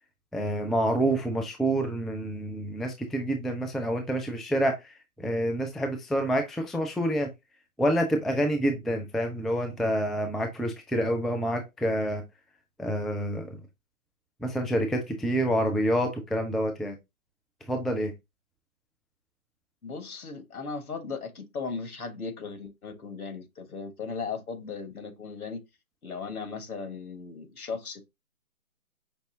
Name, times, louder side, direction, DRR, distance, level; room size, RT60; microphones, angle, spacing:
voice 1, 0.3-4.7 5.2-7.3 7.8-12.2 12.8-13.6 14.4-17.0 17.7-18.1, right 1 dB, ahead, 0.3 m, -27 dB
voice 2, 19.8-25.6 26.0-28.0, left 4 dB, 75° left, 1.4 m, -37 dB
5.2 x 3.0 x 2.6 m
hypercardioid pair, 170°, 44 cm